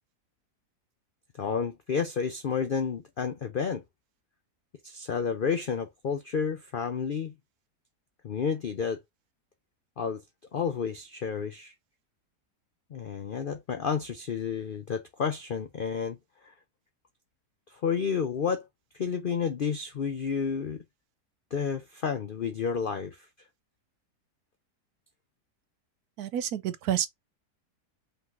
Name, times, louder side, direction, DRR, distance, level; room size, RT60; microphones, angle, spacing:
voice 1, 1.4-3.8 4.8-7.3 8.2-9.0 10.0-10.2 10.5-11.7 12.9-16.2 16.4-16.5 17.7-18.7 18.9-20.8 21.5-23.3, left 6 dB, 75° left, 0.4 m, -30 dB
voice 2, 26.2-27.1, right 11 dB, 70° right, 1.1 m, -29 dB
5.3 x 3.8 x 2.6 m
omnidirectional pair, 1.8 m